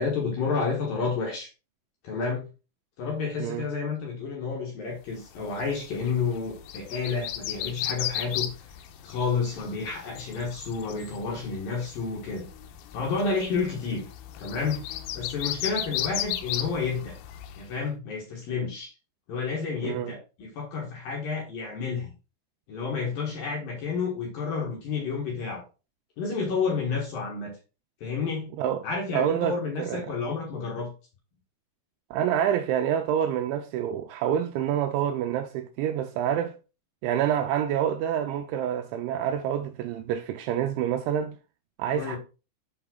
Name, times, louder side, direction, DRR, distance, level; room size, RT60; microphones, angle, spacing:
voice 1, 0.0-1.5 2.0-2.5 3.0-8.5 9.0-12.5 12.9-14.1 14.4-14.8 15.1-17.1 17.6-18.9 19.3-22.1 22.7-25.6 26.2-27.5 28.0-28.5 28.8-30.9 41.9-42.2, left 4 dB, 60° left, 2.6 m, -30 dB
sound 1, 5.3-17.7, left 12 dB, 90° left, 3.3 m, -36 dB
voice 2, 19.8-20.1 28.6-28.8 29.1-29.5 29.8-30.1 32.1-36.6 37.0-41.4 41.8-42.2, right 9 dB, 80° right, 2.8 m, -27 dB
7.0 x 5.7 x 3.8 m
omnidirectional pair, 5.8 m